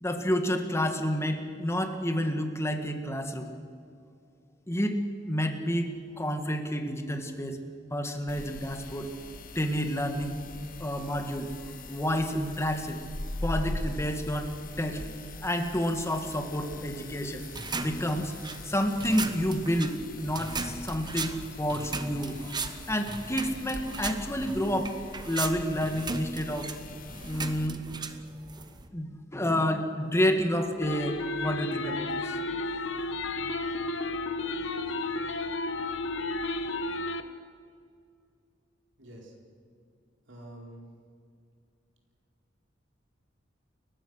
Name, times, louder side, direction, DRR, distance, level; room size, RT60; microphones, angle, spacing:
voice 1, 0.0-3.5 4.7-5.0 5.3-5.9 6.2-7.6 7.9-9.1 9.6-10.4 10.8-11.5 11.9-13.0 13.4-15.0 15.4-17.4 17.8-18.3 18.6-24.9 25.3-26.7 27.2-27.8 28.9-32.4, equal, 15° left, 6 dB, 1.8 m, -29 dB
sound 1, 8.3-27.7, left 2 dB, 45° left, 1.4 m, -42 dB
sound 2, 17.4-28.9, right 4 dB, 25° right, 1.3 m, -38 dB
sound 3, 30.8-37.2, left 2 dB, 80° left, 1.3 m, -32 dB
voice 2, 39.0-39.4 40.3-40.8, right 1 dB, 75° right, -1 dB, 4.5 m, -47 dB
30.0 x 15.0 x 6.5 m, 2.4 s
head